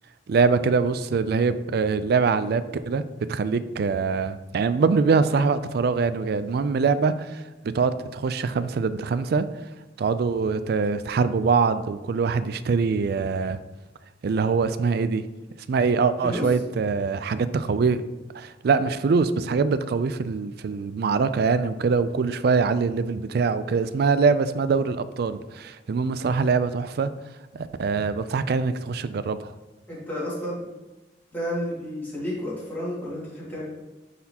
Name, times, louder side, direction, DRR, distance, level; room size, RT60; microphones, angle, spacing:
voice 1, 0.3-3.0 3.3-9.5 10.0-13.6 14.2-15.3 15.7-18.0 18.3-27.1 27.5-29.5, right 5 dB, 55° right, 13 dB, 0.3 m, -23 dB
voice 2, 29.9-30.6 31.3-33.6, equal, 10° left, -9 dB, 2.1 m, -31 dB
9.3 x 4.1 x 2.9 m, 1.1 s
head